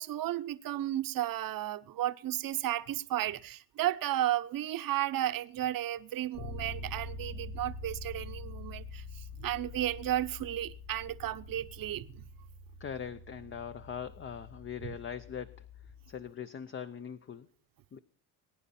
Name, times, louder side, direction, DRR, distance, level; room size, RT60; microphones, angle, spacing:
voice 1, 0.0-12.2 14.8-15.0, right 13 dB, 55° right, 0.9 m, -33 dB
Bass guitar, 6.3-16.2, left 2 dB, 85° left, 4.0 m, -45 dB
voice 2, 12.8-17.5 17.9-18.0, left 7 dB, 30° left, 0.6 m, -41 dB
20.5 x 9.6 x 4.3 m
cardioid pair, 115°, 42 cm